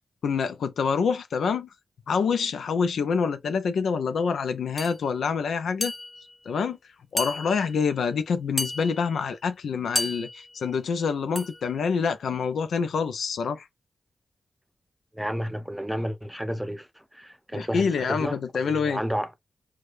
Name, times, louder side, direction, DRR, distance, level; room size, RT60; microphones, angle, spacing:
voice 1, 0.2-1.7 2.1-5.9 6.5-6.8 7.1-13.6 17.5-19.0, left 5 dB, 90° left, 0.5 m, -26 dB
sound 1, 4.8-5.0 5.8-6.4 7.2-7.8 8.6-9.2 10.0-10.6 11.4-11.7, left 2 dB, 25° left, 0.4 m, -32 dB
voice 2, 15.1-19.3, equal, 5° right, 0.7 m, -31 dB
4.7 x 2.2 x 2.5 m
cardioid pair, 55°, 0 cm